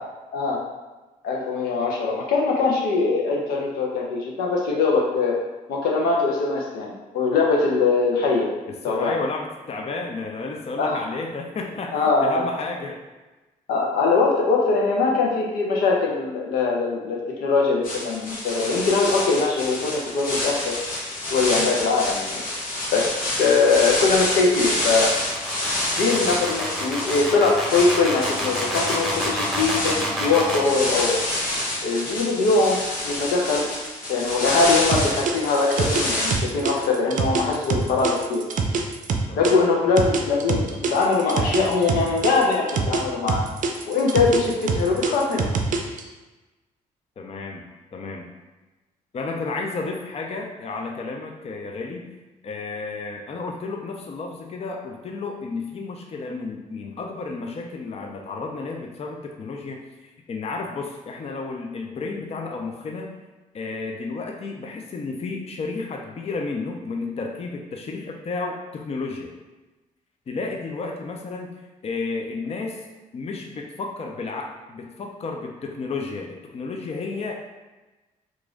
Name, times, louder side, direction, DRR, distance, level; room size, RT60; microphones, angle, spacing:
voice 1, 1.2-5.4 5.7-8.5 8.8-9.1 10.8-11.0 11.9-12.4 13.7-20.7 21.3-22.4 22.9-25.1 26.0-31.2 31.8-33.7 34.1-38.4 39.4-43.5 43.9-45.5, left 4 dB, 85° left, -1 dB, 0.7 m, -22 dB
voice 2, 8.9-13.0 39.3-39.6 47.2-47.6 47.9-48.3 49.1-52.1 52.4-63.1 63.5-69.3 70.3-71.5 71.8-72.9 73.1-77.5, left 3 dB, 45° left, 2 dB, 0.5 m, -32 dB
sound 1, 17.8-36.4, left 1 dB, 65° left, 1.0 m, -28 dB
sound 2, 21.4-30.7, equal, ahead, 1.0 m, -30 dB
sound 3, 34.9-39.5 40.0-43.0 43.3-46.0, right 5 dB, 60° right, 0.5 m, -24 dB
3.0 x 2.5 x 3.7 m, 1.1 s
supercardioid pair, 65°, 15 cm